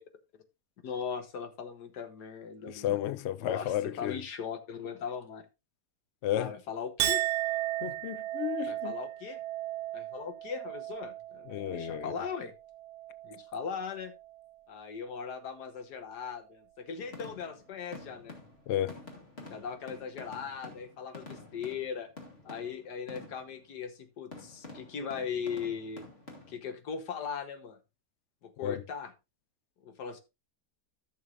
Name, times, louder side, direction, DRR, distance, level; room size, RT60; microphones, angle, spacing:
voice 1, 0.8-3.0 3.4-5.4 6.3-7.2 8.7-9.4 9.9-12.5 13.2-14.1 14.7-18.4 19.5-22.1 22.5-26.0 26.5-27.8 28.4-29.1 29.8-30.2, left 6 dB, 90° left, 1.7 m, -39 dB
voice 2, 2.7-4.2 6.2-6.5 7.8-8.9 11.5-12.1 18.7-19.0 28.6-28.8, left 12 dB, 70° left, 0.6 m, -32 dB
Chink clink, 7.0-13.6 13.9-14.5, right 15 dB, 70° right, 1.1 m, -35 dB
sound 1, 17.0-23.6 24.3-26.5, left 2 dB, 40° left, 2.2 m, -49 dB
14.5 x 6.4 x 2.5 m
omnidirectional pair, 1.7 m